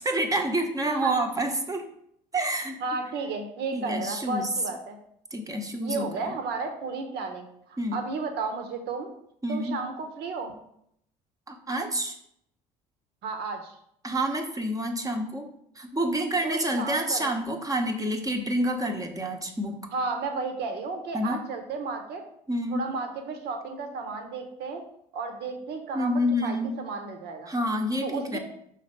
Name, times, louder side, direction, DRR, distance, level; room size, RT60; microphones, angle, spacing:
voice 1, 0.0-1.9 2.3-2.8 3.7-4.5 5.3-6.3 7.8-8.0 9.4-9.8 11.5-12.2 14.0-15.5 15.8-19.8 21.1-21.4 22.5-22.8 25.9-26.7 27.5-28.4, right 1 dB, 15° right, 3 dB, 1.1 m, -28 dB
voice 2, 0.8-1.3 2.8-5.0 5.8-9.1 9.5-10.5 13.2-13.7 16.4-17.3 19.9-22.2 22.7-24.8 25.1-26.1 26.4-27.5 28.0-28.4, right 4 dB, 55° right, 5 dB, 1.1 m, -33 dB
5.6 x 3.3 x 5.7 m, 0.72 s
figure-of-eight pair, 60°, 21 cm